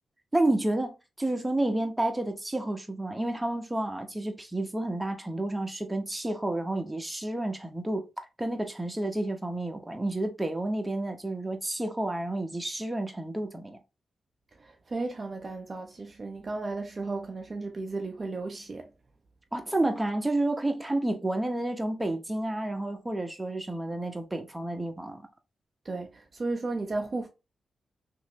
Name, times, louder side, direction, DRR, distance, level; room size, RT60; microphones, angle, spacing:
voice 1, 0.3-8.1 8.4-13.8 19.5-25.2, right 1 dB, 15° right, 0.9 m, -30 dB
voice 2, 14.6-18.9 25.8-27.3, right 3 dB, 45° right, 0.6 m, -34 dB
3.0 x 2.6 x 2.9 m
supercardioid pair, 50°, 0 cm